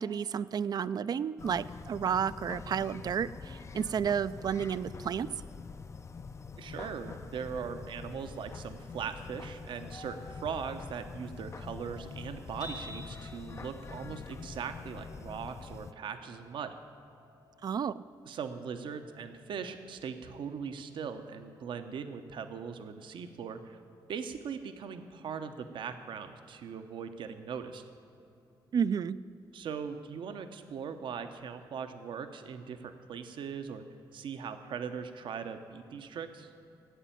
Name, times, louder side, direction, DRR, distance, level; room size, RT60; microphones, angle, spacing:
voice 1, 0.0-5.3 17.6-18.0 28.7-29.2, right 7 dB, 55° right, 16 dB, 0.4 m, -31 dB
sound 1, 1.4-15.9, left 5 dB, 35° left, 0.5 m, -45 dB
voice 2, 6.6-16.8 18.2-23.8 24.1-27.8 29.5-33.8 34.1-36.5, right 6 dB, 75° right, 8 dB, 0.8 m, -40 dB
sound 2, 12.6-28.8, left 2 dB, 65° left, 2.7 m, -56 dB
11.5 x 8.2 x 9.0 m, 2.7 s
cardioid pair, 75°, 8 cm